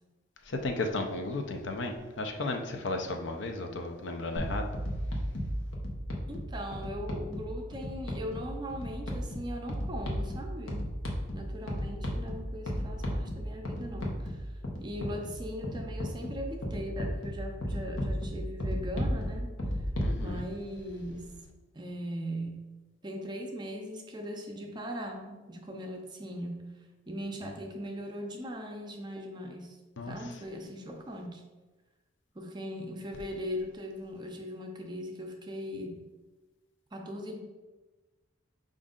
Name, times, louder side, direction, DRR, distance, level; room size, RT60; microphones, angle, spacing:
voice 1, 0.5-4.7 20.0-20.4 30.0-30.2, left 2 dB, 65° left, 4 dB, 0.5 m, -34 dB
sound 1, 4.4-20.2, equal, 85° left, 0.9 m, -35 dB
voice 2, 6.3-10.9 11.3-14.5 14.8-19.5 20.2-21.3 21.7-22.6 23.0-26.7 27.1-29.8 30.1-31.4 32.3-36.0 36.9-37.4, equal, 20° right, 2 dB, 0.5 m, -39 dB
5.1 x 2.5 x 3.6 m, 1.2 s
head